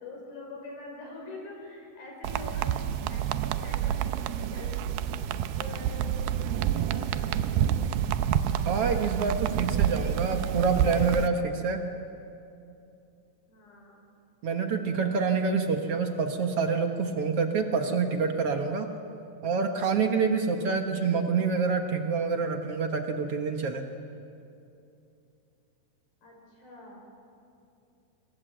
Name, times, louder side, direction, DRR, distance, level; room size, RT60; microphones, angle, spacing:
voice 1, 0.0-4.7 5.6-7.8 9.7-11.3 13.5-14.1 26.2-27.0, left 2 dB, 75° left, -1 dB, 7.0 m, -45 dB
sound 1, 2.2-11.3, right 10 dB, 85° right, 2.6 m, -28 dB
voice 2, 8.6-11.8 14.4-18.9 19.4-23.8, right 5 dB, 60° right, 5 dB, 1.6 m, -27 dB
26.5 x 21.0 x 7.8 m, 2.6 s
omnidirectional pair, 4.3 m